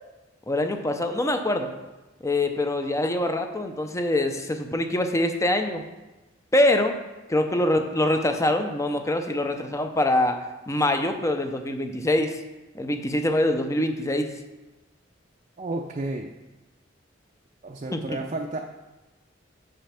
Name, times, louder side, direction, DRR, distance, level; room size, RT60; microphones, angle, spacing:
voice 1, 0.5-1.7 2.2-5.8 6.5-7.0 7.3-10.4 10.7-12.4 12.7-14.3 17.9-18.2, left 1 dB, 15° left, 6 dB, 0.6 m, -24 dB
voice 2, 15.6-16.3 17.6-18.6, right 2 dB, 35° right, 1 dB, 0.5 m, -31 dB
6.9 x 5.2 x 5.8 m, 1.1 s
head